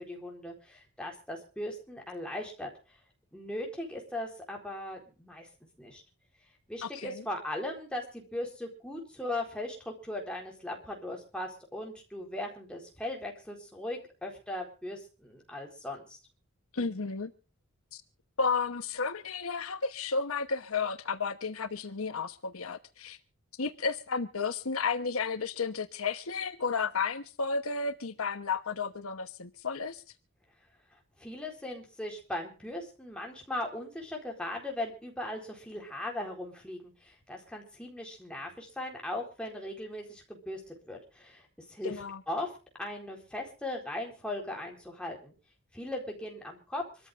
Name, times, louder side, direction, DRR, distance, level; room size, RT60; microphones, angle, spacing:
voice 1, 0.0-2.7 3.3-5.5 5.8-6.0 6.7-16.2 31.2-42.0 42.3-42.5 42.8-45.3 45.7-46.8, left 1 dB, 5° left, 4.2 m, -38 dB
voice 2, 6.8-7.2 16.7-17.3 17.9-18.0 18.4-23.2 23.6-30.0 41.8-42.2, left 5 dB, 75° left, 1.1 m, -32 dB
26.0 x 14.0 x 2.6 m
head